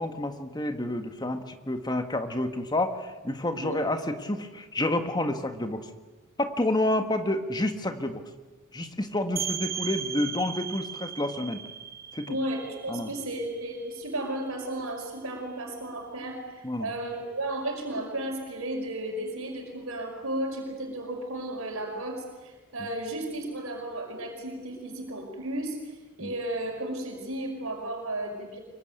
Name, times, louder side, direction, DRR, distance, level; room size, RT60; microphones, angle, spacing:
voice 1, 0.0-5.9 6.4-8.2 8.7-11.6 12.1-12.4 12.9-13.1 16.6-16.9 26.2-26.3, left 1 dB, 20° left, 7 dB, 1.7 m, -29 dB
voice 2, 3.5-3.8 12.3-28.6, right 1 dB, 70° right, 2 dB, 5.4 m, -34 dB
sound 1, 9.4-14.8, right 8 dB, 40° right, 1.3 m, -37 dB
25.0 x 23.0 x 9.4 m, 1.2 s
head